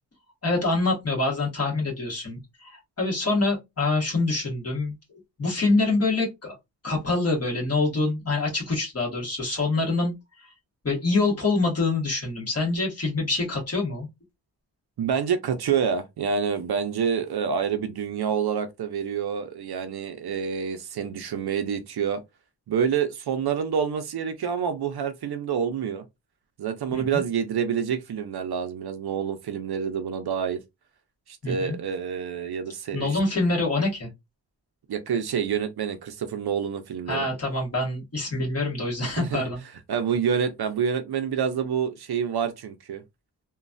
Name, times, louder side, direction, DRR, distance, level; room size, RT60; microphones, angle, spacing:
voice 1, 0.4-4.9 5.4-6.6 6.8-10.1 10.8-14.1 26.9-27.2 31.4-31.8 32.9-34.1 37.1-39.6, left 3 dB, 35° left, 1.4 m, -25 dB
voice 2, 15.0-22.2 22.7-26.0 26.6-30.6 31.3-33.1 34.9-37.3 39.0-39.4 39.9-43.0, right 7 dB, 60° right, 0.6 m, -27 dB
3.1 x 2.2 x 2.5 m
wide cardioid pair, 170°, 42 cm